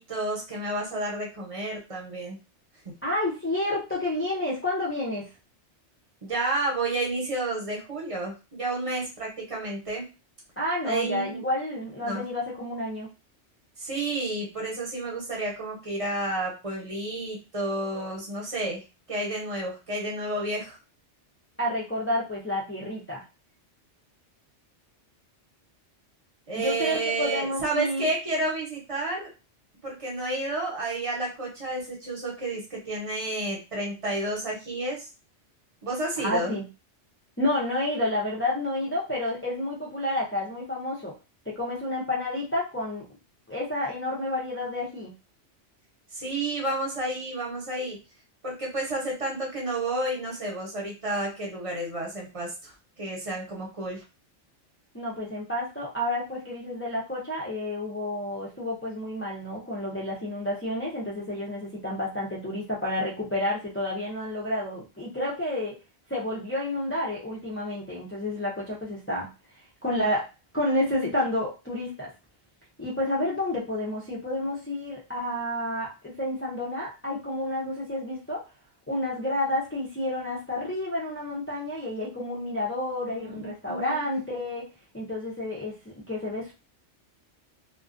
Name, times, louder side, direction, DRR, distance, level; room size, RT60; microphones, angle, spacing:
voice 1, 0.0-2.4 2.8-2.9 6.2-10.1 10.8-11.4 12.0-12.2 13.8-18.8 19.1-20.8 26.5-29.3 29.8-35.1 35.8-36.5 46.1-48.0 48.4-52.7 53.0-54.0 83.1-84.0, right 2 dB, 30° right, -2 dB, 0.8 m, -31 dB
voice 2, 3.0-5.3 10.6-13.1 21.6-23.2 26.6-28.1 36.2-36.6 37.4-41.1 41.5-43.1 43.5-45.1 54.9-65.8 66.1-69.3 69.8-70.2 70.5-72.1 72.8-78.4 78.9-84.7 84.9-86.5, left 1 dB, 20° left, -5 dB, 0.3 m, -30 dB
2.4 x 2.2 x 2.5 m, 0.30 s
omnidirectional pair, 1.2 m